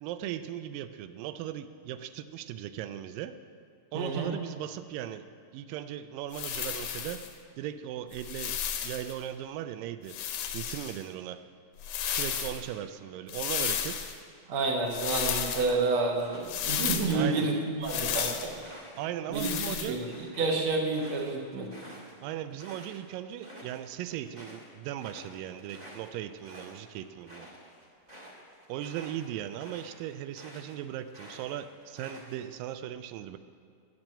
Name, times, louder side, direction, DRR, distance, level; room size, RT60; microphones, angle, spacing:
voice 1, 0.0-3.3 3.9-5.3 5.5-7.2 7.6-8.5 8.8-10.1 10.5-11.4 12.1-14.1 17.1-17.5 19.0-20.0 22.2-27.5 28.7-33.4, right 11 dB, 85° right, 11 dB, 2.2 m, -38 dB
voice 2, 3.9-4.3 14.5-18.5 19.3-20.1 20.4-21.7, right 3 dB, 55° right, 0 dB, 1.6 m, -29 dB
sound 1, 6.3-7.3 8.1-9.1 10.1-11.0 11.8-12.6 13.3-14.2 14.9-15.7 16.4-17.2 17.8-18.5 19.3-19.9, left 9 dB, 75° left, 1.9 m, -33 dB
sound 2, 15.4-17.3 17.7-23.0 23.3-23.8 24.1-30.8 31.1-32.5, equal, 25° right, 0.9 m, -50 dB
8.9 x 7.5 x 8.7 m, 2.3 s
omnidirectional pair, 3.9 m